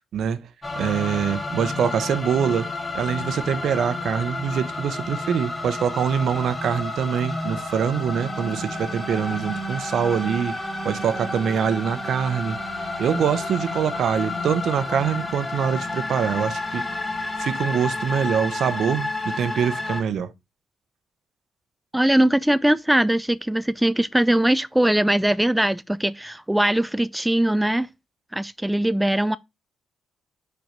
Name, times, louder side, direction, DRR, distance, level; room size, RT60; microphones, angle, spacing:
voice 1, 0.1-0.5 0.8-10.6 10.8-12.6 13.0-16.8 17.4-20.3, right 8 dB, 65° right, 0.8 m, -24 dB
sound 1, 0.6-20.0, left 2 dB, 15° left, 2.1 m, -30 dB
voice 2, 21.9-27.9 28.3-29.4, right 1 dB, 5° right, 0.3 m, -21 dB
5.2 x 4.6 x 5.1 m
cardioid pair, 90°, 0 cm